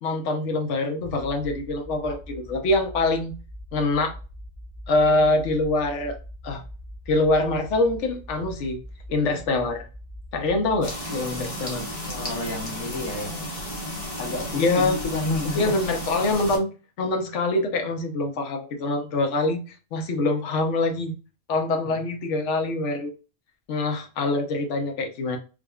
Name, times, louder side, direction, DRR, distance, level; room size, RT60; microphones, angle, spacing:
voice 1, 0.0-3.3 3.7-4.2 4.9-6.2 6.4-6.6 7.1-8.8 9.1-9.9 10.3-11.8 14.6-15.0 15.5-16.7 17.0-21.1 21.5-23.1 23.7-25.4, left 2 dB, 60° left, 1.1 m, -24 dB
sound 1, 1.0-10.9, equal, 45° right, 1.4 m, -42 dB
sound 2, 10.8-16.6, left 1 dB, 25° left, 1.0 m, -33 dB
voice 2, 12.1-13.5 14.2-15.7 21.8-22.0, left 2 dB, 90° left, 1.6 m, -30 dB
4.9 x 2.5 x 2.3 m
omnidirectional pair, 1.4 m